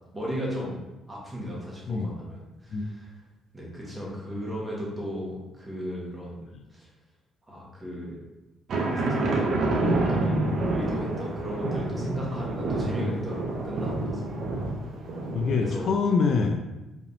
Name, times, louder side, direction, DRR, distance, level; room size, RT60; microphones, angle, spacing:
voice 1, 0.1-0.8 1.1-3.2 3.5-6.9 7.5-8.2 8.8-14.3 15.6-15.9, equal, 15° right, -5 dB, 1.3 m, -36 dB
sound 1, 8.7-15.8, right 2 dB, 55° right, 0.6 m, -28 dB
voice 2, 15.3-16.6, left 4 dB, 50° left, 3 dB, 0.4 m, -25 dB
4.9 x 3.4 x 2.7 m, 1.0 s
cardioid pair, 140°, 0 cm